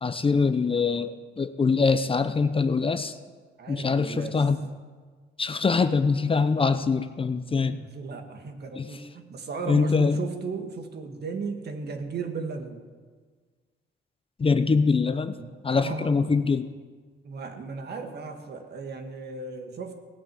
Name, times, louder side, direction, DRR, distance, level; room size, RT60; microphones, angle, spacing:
voice 1, 0.0-3.2 3.7-4.6 5.4-7.8 8.8-8.9 9.7-10.2 14.4-15.4 15.6-16.7, left 4 dB, 25° left, 11 dB, 0.7 m, -23 dB
voice 2, 3.6-4.4 7.7-12.9 15.4-16.3 17.2-20.1, right 4 dB, 55° right, 5 dB, 1.9 m, -36 dB
17.5 x 8.7 x 7.7 m, 1.5 s
cardioid pair, 90°, 20 cm